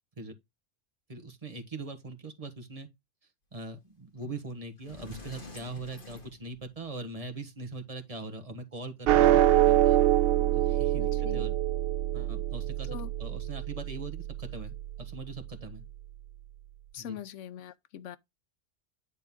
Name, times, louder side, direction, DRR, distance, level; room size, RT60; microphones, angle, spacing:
voice 1, 1.1-2.9 3.5-10.0 10.5-11.5 12.1-15.8 17.0-17.2, right 2 dB, 30° right, 1.4 m, -41 dB
Sliding door, 4.3-4.4 4.8-7.1, left 3 dB, 45° left, 2.0 m, -48 dB
sound 1, 9.1-15.6, right 13 dB, 65° right, 0.6 m, -25 dB
voice 2, 11.0-11.5 12.9-13.1 16.9-18.2, left 10 dB, 75° left, 1.0 m, -42 dB
9.9 x 3.9 x 3.6 m
omnidirectional pair, 1.3 m